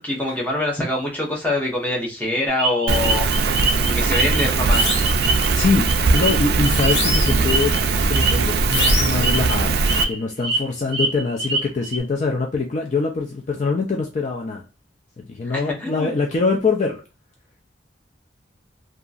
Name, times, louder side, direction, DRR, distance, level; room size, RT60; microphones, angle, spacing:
voice 1, 0.0-3.3 3.8-4.9 15.4-16.1, left 1 dB, 10° left, -3 dB, 0.8 m, -24 dB
sound 1, 2.6-4.4 4.7-7.8 8.1-8.3 8.7-8.9 9.2-9.5 9.9-10.6 10.9-12.0, right 2 dB, 30° right, 0.8 m, -24 dB
Rain, 2.9-10.0, right 4 dB, 55° right, 0.3 m, -20 dB
sound 2, 4.7-5.2 6.7-7.5 8.7-9.3, left 2 dB, 65° left, 1.0 m, -25 dB
voice 2, 5.5-7.8 8.1-14.6 15.2-17.0, left 4 dB, 40° left, 0 dB, 0.4 m, -23 dB
2.8 x 2.3 x 2.4 m, 0.32 s
head